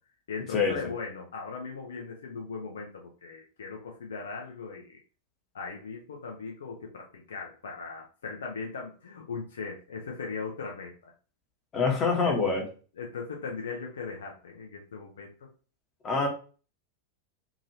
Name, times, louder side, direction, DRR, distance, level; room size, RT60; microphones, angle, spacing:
voice 1, 0.3-5.0 5.5-10.9 12.2-12.3 13.0-15.3, left 5 dB, 65° left, 0 dB, 0.5 m, -38 dB
voice 2, 11.7-12.6 16.0-16.3, left 4 dB, 25° left, -1 dB, 1.0 m, -25 dB
2.9 x 2.6 x 2.7 m, 0.38 s
figure-of-eight pair, 90°, 0 cm